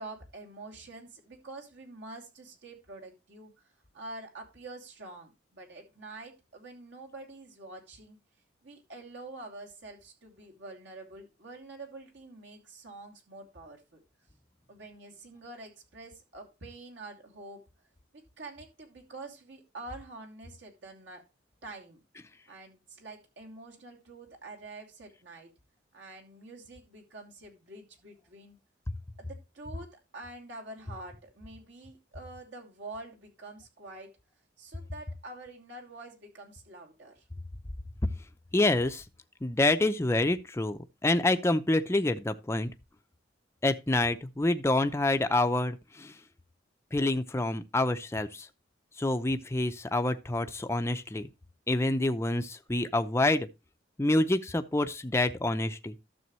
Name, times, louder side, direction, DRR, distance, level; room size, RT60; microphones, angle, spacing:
voice 1, 0.0-3.7 3.9-8.2 8.6-14.0 14.7-17.6 18.1-21.2 21.6-22.0 22.5-25.5 25.9-28.6 29.2-34.2 34.6-37.3, right 2 dB, 70° right, 2.7 m, -46 dB
voice 2, 38.5-39.0 39.4-42.7 43.6-46.1 46.9-48.5 49.0-51.3 51.7-53.5 54.0-55.9, left 2 dB, 15° left, 0.5 m, -27 dB
12.5 x 7.0 x 3.1 m
head